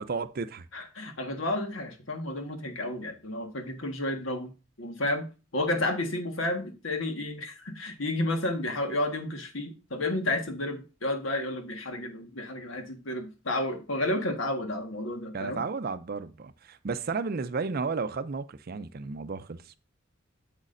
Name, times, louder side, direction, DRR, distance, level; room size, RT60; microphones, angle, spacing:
voice 1, 0.0-0.7 15.3-19.8, right 4 dB, 50° right, 0.5 m, -33 dB
voice 2, 0.7-4.5 4.8-5.3 5.5-15.6, left 1 dB, 75° left, 1.5 m, -31 dB
8.2 x 7.2 x 2.6 m
head